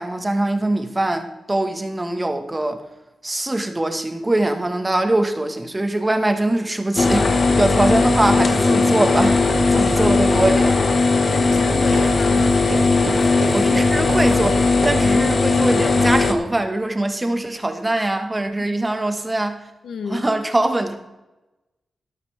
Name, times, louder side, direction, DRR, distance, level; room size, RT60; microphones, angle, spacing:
voice 1, 0.0-2.8 3.2-10.7 13.5-19.6 20.1-21.0, right 1 dB, 20° right, 7 dB, 1.5 m, -22 dB
sound 1, 7.0-16.3, left 3 dB, 50° left, 1.3 m, -18 dB
sound 2, 9.3-15.2, right 2 dB, 60° right, 2.8 m, -32 dB
voice 2, 9.7-10.2 11.3-12.7 18.6-18.7 19.8-20.3, left 6 dB, 85° left, 11 dB, 0.9 m, -32 dB
13.0 x 12.0 x 3.5 m, 1.0 s
wide cardioid pair, 100°, 0 cm